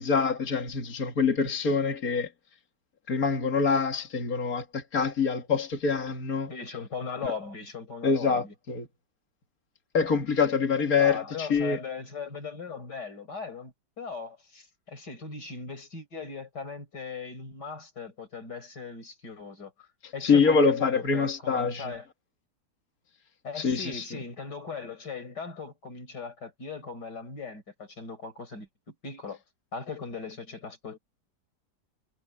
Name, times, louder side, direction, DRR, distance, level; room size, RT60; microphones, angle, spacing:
voice 1, 0.0-2.3 3.1-6.5 7.2-7.3 8.0-8.9 9.9-11.8 20.0-21.9 23.5-24.1, left 5 dB, 55° left, 2.5 m, -25 dB
voice 2, 6.5-8.5 11.0-19.9 20.1-22.1 23.4-29.4 29.7-31.0, left 4 dB, 70° left, 5.2 m, -39 dB
omnidirectional pair, 1.9 m